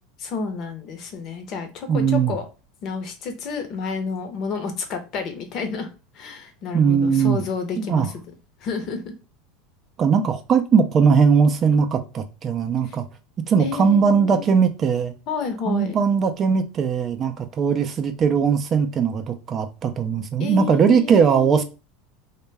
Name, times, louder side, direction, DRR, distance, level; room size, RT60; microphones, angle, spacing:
voice 1, 0.2-2.5 2.8-5.9 6.1-8.1 8.6-9.1 12.8-13.0 13.6-14.5 15.3-16.0 20.4-21.6, left 5 dB, 45° left, 0.7 m, -30 dB
voice 2, 1.9-2.4 6.7-7.4 7.8-8.1 10.0-13.1 13.5-15.1 15.7-21.6, right 6 dB, 30° right, 0.4 m, -19 dB
2.2 x 2.1 x 3.2 m
supercardioid pair, 125°, 0 cm